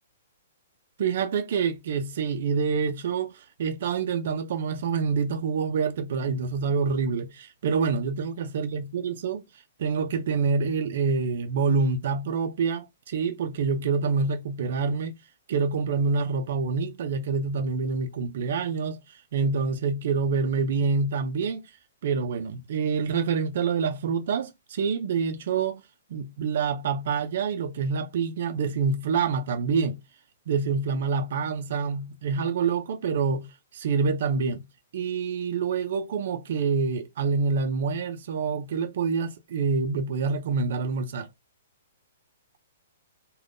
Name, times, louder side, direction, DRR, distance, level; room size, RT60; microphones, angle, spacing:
voice 1, 1.0-9.4 9.8-15.1 15.5-19.0 19.3-21.6 22.0-25.8 26.1-30.0 30.5-33.5 33.7-34.6 34.9-41.3, right 5 dB, 40° right, 0.4 m, -26 dB
3.4 x 2.2 x 2.5 m
hypercardioid pair, 180°, 0 cm